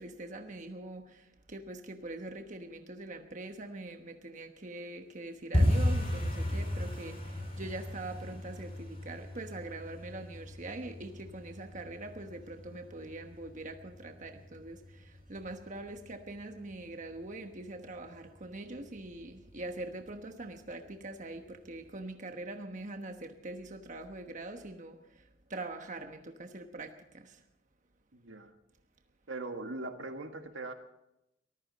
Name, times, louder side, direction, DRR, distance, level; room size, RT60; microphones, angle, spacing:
voice 1, 0.0-25.2 25.5-27.4, right 2 dB, 40° right, 5 dB, 1.2 m, -43 dB
sound 1, 5.5-16.3 16.5-17.2 17.5-17.8 18.0-18.4 18.7-18.8 19.3-19.8 20.2-20.3 20.8-20.9, left 1 dB, 30° left, 4.4 m, -35 dB
voice 2, 28.1-28.5 29.3-30.7, right 2 dB, 80° right, 6 dB, 1.7 m, -40 dB
23.5 x 14.5 x 4.1 m, 0.84 s
head